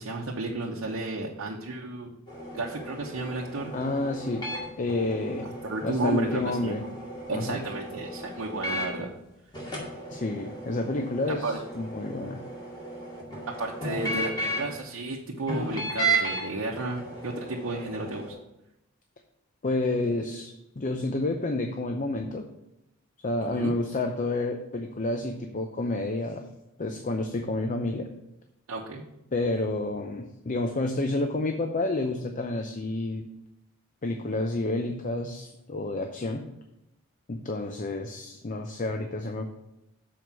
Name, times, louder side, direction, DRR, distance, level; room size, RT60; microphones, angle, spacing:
voice 1, 0.0-2.1 2.5-3.7 5.4-6.8 7.3-9.1 11.4-11.6 13.6-18.3 23.5-23.7 28.7-29.0, right 2 dB, 85° right, -2 dB, 0.9 m, -33 dB
sound 1, 2.3-9.0 9.5-14.8 15.5-16.4 16.7-18.3, right 2 dB, 20° left, 2.2 m, -34 dB
voice 2, 3.7-4.4 4.8-5.5 5.8-6.8 7.3-7.6 10.1-12.4 19.6-20.5 20.8-22.4 23.2-26.4 26.8-28.1 29.3-33.2 34.0-36.4 37.3-39.5, left 2 dB, 40° left, 5 dB, 0.6 m, -29 dB
7.2 x 4.7 x 6.0 m, 0.86 s
head